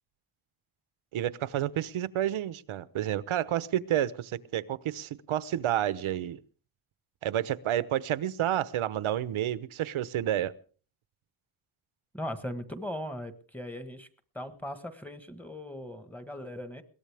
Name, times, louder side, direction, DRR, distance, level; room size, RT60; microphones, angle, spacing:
voice 1, 1.1-6.4 7.2-10.5, right 11 dB, 85° right, 1.1 m, -30 dB
voice 2, 12.1-14.1 14.3-16.8, left 1 dB, 5° left, 1.4 m, -39 dB
22.0 x 18.0 x 3.5 m
wide cardioid pair, 170°, 48 cm